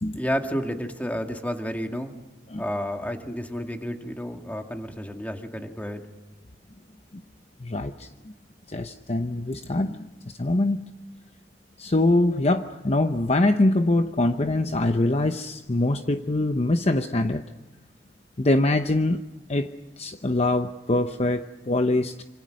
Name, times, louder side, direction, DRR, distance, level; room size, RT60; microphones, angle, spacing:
voice 1, 0.1-2.1 2.6-6.0, equal, 10° left, 4 dB, 2.1 m, -31 dB
voice 2, 7.6-8.1 8.7-10.1 10.4-10.8 11.8-17.4 18.4-19.2 19.5-19.7 20.0-22.2, left 2 dB, 35° left, 7 dB, 0.8 m, -23 dB
27.0 x 26.0 x 6.4 m, 1.1 s
head